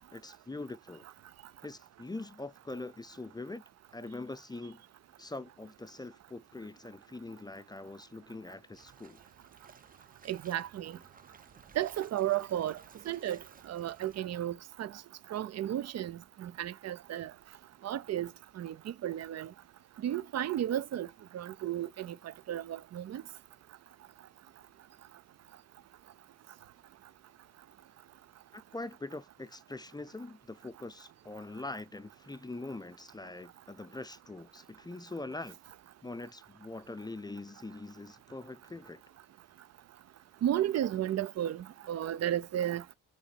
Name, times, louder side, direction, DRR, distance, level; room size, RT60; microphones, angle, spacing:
voice 1, 0.1-1.0 1.6-3.6 3.9-4.8 5.2-9.2 28.5-35.6 36.0-39.0, left 2 dB, 15° left, 0.5 m, -43 dB
sound 1, 8.7-14.2, right 5 dB, 30° right, 0.9 m, -58 dB
voice 2, 10.3-11.0 11.7-12.8 13.1-13.4 13.7-15.0 15.3-17.3 17.8-18.3 18.6-19.5 20.0-21.1 21.3-22.2 22.5-23.2 40.4-42.8, right 11 dB, 60° right, 0.6 m, -33 dB
7.0 x 4.1 x 4.2 m
cardioid pair, 90°, 30 cm